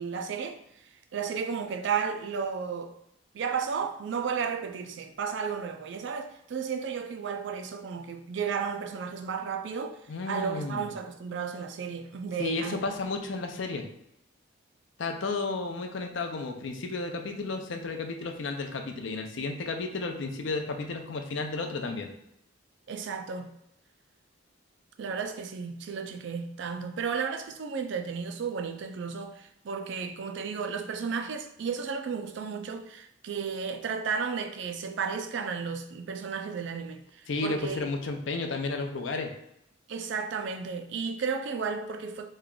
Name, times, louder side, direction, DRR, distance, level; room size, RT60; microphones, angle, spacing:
voice 1, 0.0-3.0 3.3-10.0 10.3-12.8 22.9-23.5 25.0-37.8 39.9-42.3, right 6 dB, 60° right, 0.4 m, -33 dB
voice 2, 10.1-10.9 12.4-13.8 15.0-22.1 37.3-39.3, left 3 dB, 70° left, 0.5 m, -32 dB
3.1 x 2.3 x 3.7 m
head